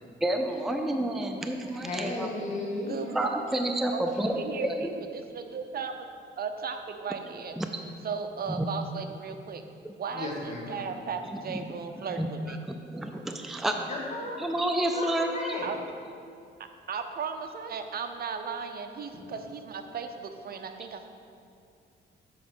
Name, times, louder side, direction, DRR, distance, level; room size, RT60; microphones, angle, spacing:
voice 1, 0.2-2.3 3.1-4.9 7.6-7.7 8.6-8.7 11.5-11.6 12.2-13.8 14.4-15.5, right 1 dB, ahead, 4 dB, 0.4 m, -30 dB
voice 2, 1.7-3.0 10.1-10.9 13.9-14.4 14.8-15.8, left 2 dB, 35° left, -3 dB, 1.8 m, -35 dB
voice 3, 2.8-3.3 3.9-6.1 6.4-7.6 8.0-9.6 10.0-12.6 15.6-15.8 16.6-21.1, right 6 dB, 50° right, 6 dB, 0.7 m, -36 dB
7.2 x 4.9 x 6.3 m, 2.4 s
cardioid pair, 105°, 20 cm